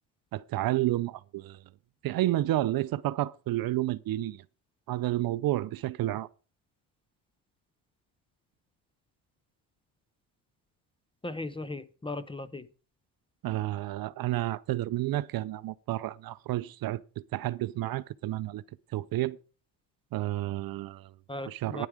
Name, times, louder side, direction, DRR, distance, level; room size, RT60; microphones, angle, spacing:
voice 1, 0.3-1.6 2.0-4.4 4.9-6.3 13.4-18.6 18.9-19.4 20.1-21.1 21.5-21.9, right 15 dB, 50° right, 0.5 m, -30 dB
voice 2, 11.2-12.7 21.3-21.9, left 2 dB, 10° left, 0.6 m, -37 dB
11.0 x 10.0 x 4.9 m
cardioid pair, 105°, 46 cm